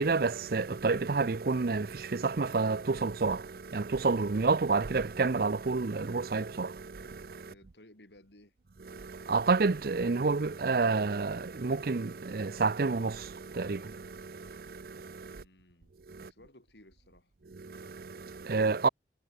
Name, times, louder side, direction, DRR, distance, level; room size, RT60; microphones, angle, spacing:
voice 1, 0.0-7.5 8.9-15.4 16.1-16.3 17.5-18.9, right 4 dB, 55° right, 0.6 m, -30 dB
voice 2, 7.4-8.5 15.3-17.3, left 1 dB, 75° left, 7.2 m, -58 dB
head